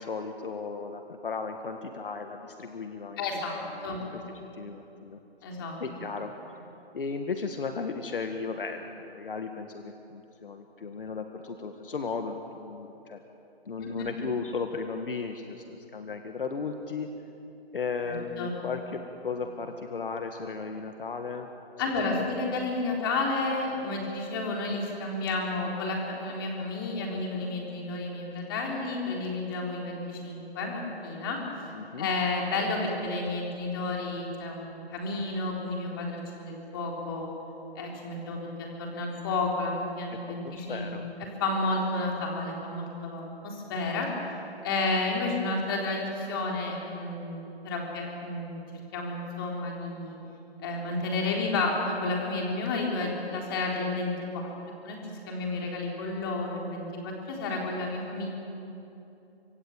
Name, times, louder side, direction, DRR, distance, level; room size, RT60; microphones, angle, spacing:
voice 1, 0.0-3.2 3.7-5.2 5.8-6.3 6.9-13.2 13.7-17.1 17.7-21.5 22.1-22.2 31.7-32.1 40.1-40.2 40.4-41.1, left 4 dB, 55° left, 5 dB, 1.8 m, -35 dB
voice 2, 3.2-3.6 3.8-4.0 5.4-5.8 13.8-14.1 18.1-18.5 21.8-31.4 32.0-37.3 37.8-41.0 41.4-44.1 44.6-48.6 48.9-50.2 50.6-54.5 54.8-55.0 55.3-58.3, left 2 dB, 20° left, -1 dB, 3.8 m, -31 dB
25.5 x 22.0 x 9.0 m, 2.9 s
hypercardioid pair, 170°, 32 cm